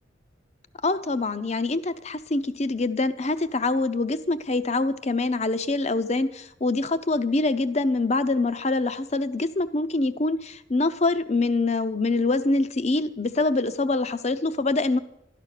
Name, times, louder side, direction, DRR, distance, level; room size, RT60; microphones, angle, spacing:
voice 1, 0.8-15.0, left 2 dB, 35° left, 13 dB, 0.6 m, -25 dB
12.5 x 12.0 x 6.6 m, 0.81 s
head